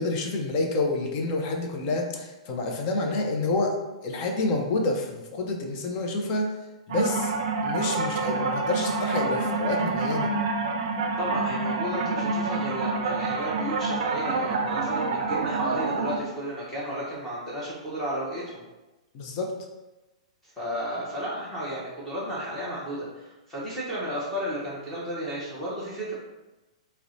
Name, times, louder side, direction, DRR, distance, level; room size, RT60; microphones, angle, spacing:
voice 1, 0.0-3.7 4.0-6.5 6.9-7.3 7.6-10.3 19.1-19.5, left 2 dB, 35° left, 2 dB, 0.5 m, -28 dB
sound 1, 6.9-16.2, right 3 dB, 65° right, 0.4 m, -27 dB
voice 2, 11.2-18.6 20.6-26.2, equal, 10° left, -8 dB, 0.8 m, -33 dB
4.2 x 2.1 x 2.6 m, 1.1 s
hypercardioid pair, 150°, 4 cm